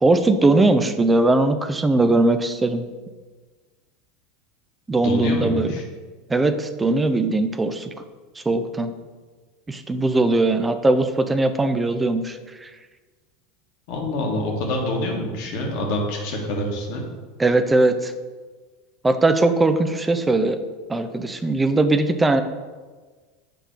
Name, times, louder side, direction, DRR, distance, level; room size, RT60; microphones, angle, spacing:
voice 1, 0.0-2.9 4.9-5.7 6.3-7.9 8.4-8.9 9.7-12.7 17.4-18.1 19.0-20.6 20.9-22.4, right 2 dB, 15° right, 9 dB, 0.5 m, -20 dB
voice 2, 5.0-5.8 13.9-17.0, left 1 dB, 50° left, 0 dB, 1.4 m, -26 dB
7.9 x 3.3 x 4.6 m, 1.4 s
figure-of-eight pair, 80°, 0 cm